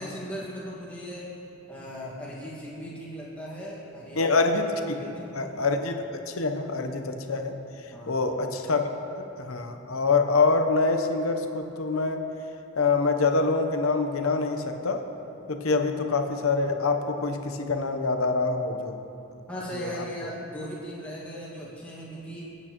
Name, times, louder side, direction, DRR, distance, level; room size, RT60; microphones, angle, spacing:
voice 1, 0.0-1.4 1.7-4.4 4.8-5.6 7.9-8.1 19.5-22.5, equal, 5° left, -6 dB, 1.7 m, -38 dB
voice 2, 4.2-5.0 5.3-7.6 8.1-12.2 12.8-15.0 15.5-19.0 19.7-19.9, left 3 dB, 75° left, 6 dB, 0.8 m, -25 dB
22.5 x 8.5 x 3.0 m, 2.9 s
head